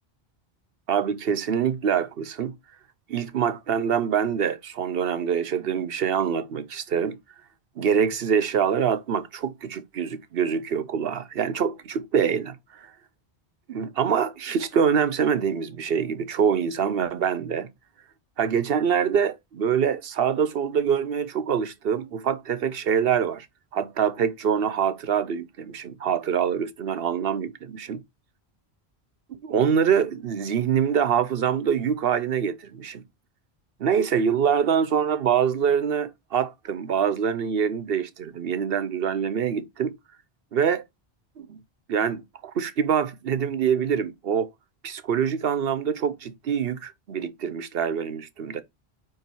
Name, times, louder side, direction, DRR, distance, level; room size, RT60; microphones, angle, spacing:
voice 1, 0.9-2.6 3.1-7.2 7.8-12.9 13.7-17.7 18.4-23.5 23.7-28.0 29.4-33.0 33.8-39.9 40.5-40.8 41.4-41.6 41.9-44.5 44.8-48.6, right 7 dB, 65° right, 0.9 m, -25 dB
8.8 x 3.0 x 4.4 m
omnidirectional pair, 1.1 m